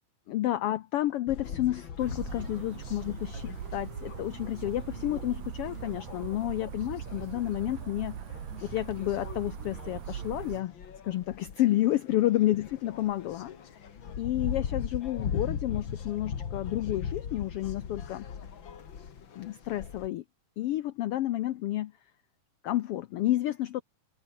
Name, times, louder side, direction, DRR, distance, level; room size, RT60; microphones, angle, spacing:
voice 1, 0.3-8.2 8.6-10.7 11.0-13.9 14.2-18.3 19.3-20.2 20.6-21.9 22.6-23.8, left 14 dB, 85° left, 1.3 m, -30 dB
sound 1, 1.3-20.1, left 7 dB, 45° left, 2.2 m, -40 dB
sound 2, 2.0-10.6, right 10 dB, 70° right, 3.0 m, -40 dB
omnidirectional pair, 3.5 m